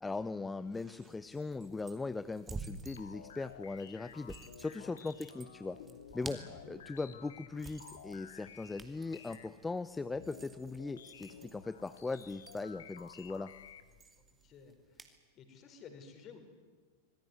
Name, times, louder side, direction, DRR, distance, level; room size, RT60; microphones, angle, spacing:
voice 1, 0.0-5.8 6.1-13.5, left 3 dB, 10° left, 14 dB, 0.7 m, -39 dB
sound 1, 0.6-15.2, right 4 dB, 15° right, 2.6 m, -52 dB
sound 2, 2.9-14.0, left 8 dB, 65° left, 2.0 m, -54 dB
voice 2, 14.4-15.1 15.3-16.4, left 6 dB, 30° left, 6 dB, 4.9 m, -54 dB
26.0 x 21.0 x 9.5 m, 1.4 s
figure-of-eight pair, 90°, 0 cm